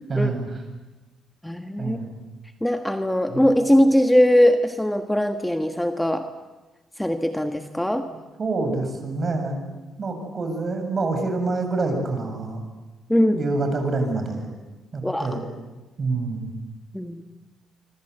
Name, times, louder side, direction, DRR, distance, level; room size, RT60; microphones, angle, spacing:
voice 1, 0.1-0.5 1.8-2.2 3.3-3.4 8.1-9.6 10.0-12.6 13.1-14.5 14.9-15.4 16.0-16.5, right 3 dB, 40° right, 5 dB, 7.4 m, -26 dB
voice 2, 1.4-2.0 2.6-6.3 7.0-8.0 13.1-13.4 15.0-15.4 16.9-17.2, equal, 5° left, 7 dB, 1.6 m, -20 dB
26.0 x 25.5 x 8.1 m, 1.2 s
cardioid pair, 90°, 0 cm